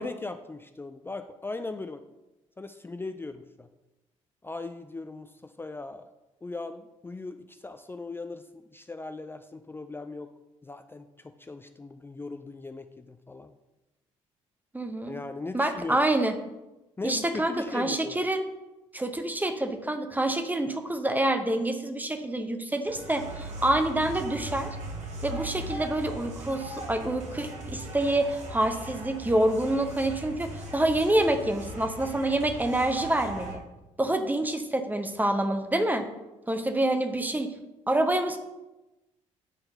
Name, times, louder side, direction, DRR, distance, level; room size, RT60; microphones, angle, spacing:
voice 1, 0.0-2.0 2.6-3.7 4.4-6.1 6.4-10.3 10.6-13.5 15.1-16.0 17.0-18.2, left 3 dB, 15° left, 8 dB, 0.4 m, -39 dB
voice 2, 14.7-15.1 15.5-16.3 17.0-18.4 18.9-24.7 25.2-33.6 34.0-36.1 36.5-37.5 37.9-38.4, right 1 dB, 10° right, 6 dB, 0.9 m, -27 dB
sound 1, 22.9-33.6, right 1 dB, 45° right, 1.4 m, -39 dB
8.9 x 3.8 x 3.9 m, 1.0 s
figure-of-eight pair, 45°, 16 cm